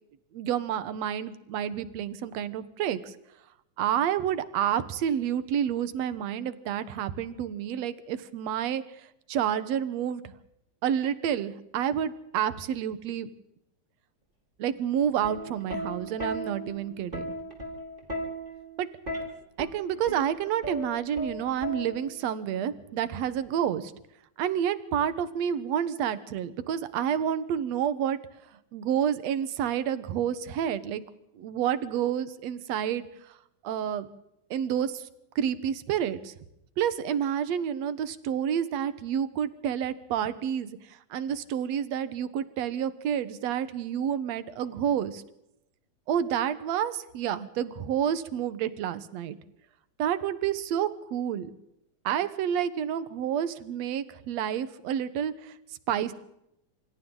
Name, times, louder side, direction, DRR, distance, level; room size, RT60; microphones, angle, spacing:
voice 1, 0.3-3.1 3.8-10.2 10.8-13.3 14.6-17.3 18.8-18.9 19.6-23.9 24.4-28.2 28.7-31.0 31.4-33.0 33.6-34.1 34.5-35.1 35.4-36.3 36.8-45.2 46.1-49.4 50.0-51.5 52.0-55.5 55.9-56.1, right 9 dB, 65° right, 13 dB, 2.3 m, -29 dB
Plucked string instrument, 15.0-22.3 23.3-23.7, equal, 15° right, 4.5 m, -37 dB
27.5 x 26.0 x 4.0 m, 0.82 s
omnidirectional pair, 3.6 m